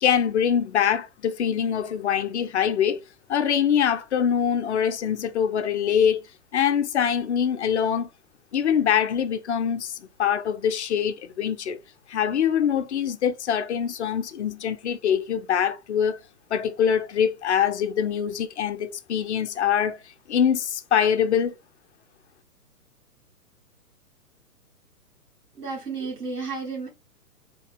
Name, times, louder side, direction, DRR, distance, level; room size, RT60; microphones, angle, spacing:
voice 1, 0.0-3.0 3.3-6.2 6.5-8.1 8.5-11.8 12.1-16.2 16.5-20.0 20.3-21.6, left 8 dB, 50° left, 0.5 m, -24 dB
voice 2, 25.5-26.9, right 4 dB, 85° right, 1.6 m, -32 dB
3.7 x 2.2 x 3.3 m
figure-of-eight pair, 120°, 46 cm